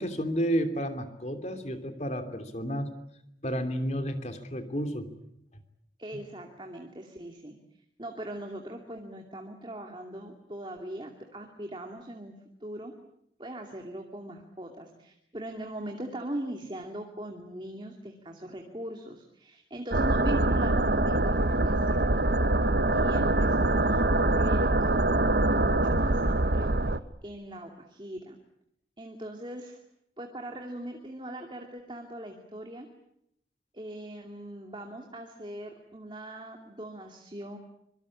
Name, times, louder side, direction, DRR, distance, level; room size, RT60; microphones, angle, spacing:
voice 1, 0.0-2.9 3.4-5.1, equal, 40° left, 7 dB, 3.0 m, -31 dB
voice 2, 6.0-7.5 8.0-12.4 12.6-12.9 13.4-22.2 22.9-25.0 25.3-26.8 27.2-28.4 29.0-29.8 30.2-32.9 33.7-37.6, right 1 dB, 25° right, 3 dB, 2.6 m, -40 dB
sound 1, 19.9-27.0, right 2 dB, 65° right, 1.1 m, -24 dB
25.5 x 24.0 x 8.7 m, 0.78 s
head